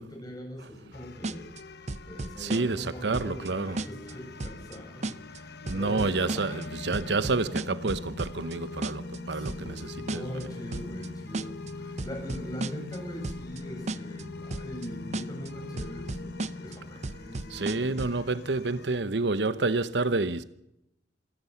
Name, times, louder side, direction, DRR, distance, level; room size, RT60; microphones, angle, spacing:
voice 1, 0.0-6.6 9.3-18.2, equal, 20° left, 7.6 m, -42 dB
sound 1, 0.9-18.9, left 3 dB, 65° left, 1.2 m, -42 dB
sound 2, 1.2-1.6 1.9-2.9 3.1-3.5 3.8-4.1 4.4-4.8 5.0-5.4 5.7-6.7 6.9-8.6 8.8-9.2 9.5-9.8 10.1-10.4 10.7-11.1 11.3-11.7 12.0-13.0 13.2-13.6 13.9-14.2 14.5-14.9 15.1-15.5 15.8-16.8 17.0-18.2, right 2 dB, 40° right, 0.7 m, -34 dB
voice 2, 2.4-3.8 5.6-10.5 17.5-20.4, right 3 dB, 70° right, 0.9 m, -29 dB
26.5 x 14.0 x 7.1 m
head